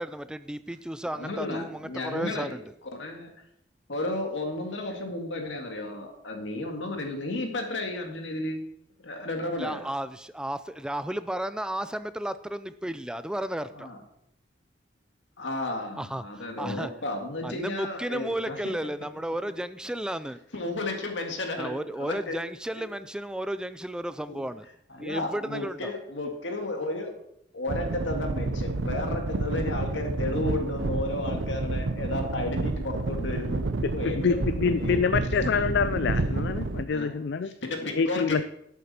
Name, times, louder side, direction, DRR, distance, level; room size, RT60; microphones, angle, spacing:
voice 1, 0.0-2.6 9.6-13.9 16.0-16.9 17.4-20.4 21.6-24.7 25.0-25.9, right 1 dB, 5° right, 13 dB, 0.3 m, -33 dB
voice 2, 1.1-2.6 2.9-3.3 3.9-8.6 9.0-9.9 13.7-14.0 15.4-18.6 20.5-22.4 22.7-22.8 24.3-24.4 24.9-27.1 27.5-33.7 33.9-35.1 36.9-37.1 37.6-38.4, left 2 dB, 85° left, 3 dB, 2.0 m, -33 dB
sound 1, 27.7-36.8, right 2 dB, 85° right, 0.7 m, -30 dB
voice 3, 34.0-37.5 37.9-38.4, left 5 dB, 65° left, 12 dB, 0.4 m, -26 dB
11.0 x 8.4 x 4.3 m, 0.77 s
head